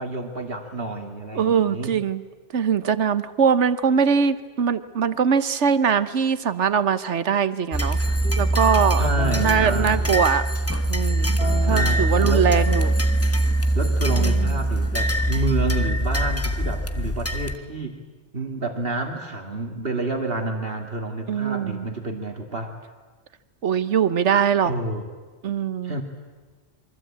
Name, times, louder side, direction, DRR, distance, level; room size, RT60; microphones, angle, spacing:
voice 1, 0.0-2.0 9.0-10.1 11.7-12.5 13.7-18.0 18.3-22.7 24.6-25.1 25.8-26.0, right 2 dB, 55° right, 3 dB, 2.5 m, -29 dB
voice 2, 1.3-2.2 2.5-8.0 8.4-9.1 9.4-10.4 10.9-12.9 14.2-14.5 21.3-21.8 23.6-24.7 25.4-25.9, right 7 dB, 75° right, 13 dB, 1.3 m, -22 dB
sound 1, 7.7-17.6, right 1 dB, 15° left, 1.2 m, -22 dB
sound 2, 7.9-10.9 11.4-15.3, left 1 dB, 55° left, 3.2 m, -37 dB
27.0 x 24.0 x 8.7 m, 1.4 s
omnidirectional pair, 1.2 m